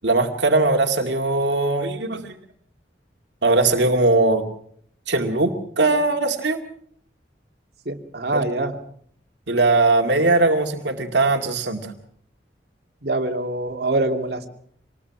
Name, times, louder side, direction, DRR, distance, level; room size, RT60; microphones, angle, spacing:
voice 1, 0.0-2.4 3.4-4.4 5.1-6.6 8.3-8.4 9.5-11.9, right 2 dB, 75° right, 4 dB, 2.2 m, -20 dB
voice 2, 7.9-8.8 13.0-14.5, right 2 dB, 60° right, 3 dB, 2.4 m, -24 dB
26.0 x 20.0 x 5.9 m, 0.64 s
head